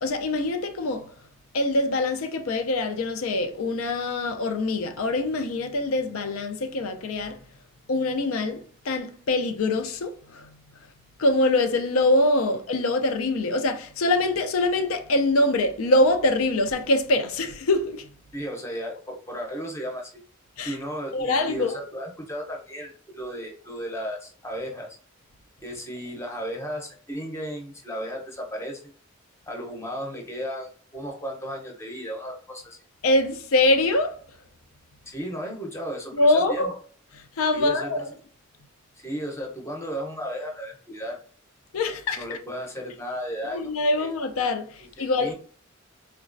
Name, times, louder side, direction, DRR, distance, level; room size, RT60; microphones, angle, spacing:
voice 1, 0.0-1.1 1.5-7.4 7.9-10.6 11.2-18.1 20.6-20.8 21.1-21.8 33.0-34.2 36.1-36.8 37.4-38.0 41.7-42.3 43.5-45.3, left 2 dB, 85° left, 0.4 m, -24 dB
voice 2, 18.3-20.2 20.6-24.9 25.6-28.9 29.5-32.8 35.1-36.2 36.5-36.7 37.5-38.0 39.0-41.2 42.1-43.6 44.0-44.1 45.0-45.3, equal, 15° left, 0.6 m, -34 dB
3.9 x 2.2 x 2.5 m
head